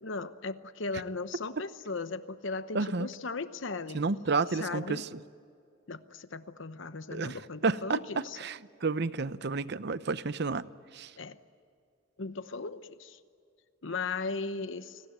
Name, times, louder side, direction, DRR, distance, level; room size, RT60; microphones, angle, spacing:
voice 1, 0.0-4.0 4.6-5.0 5.9-8.4 11.2-11.4 12.2-13.2 13.8-15.0, left 3 dB, 65° left, 0.9 m, -37 dB
voice 2, 2.7-3.1 3.9-5.2 7.1-10.6 10.9-11.1, right 4 dB, 55° right, 0.7 m, -31 dB
29.5 x 19.5 x 9.2 m
head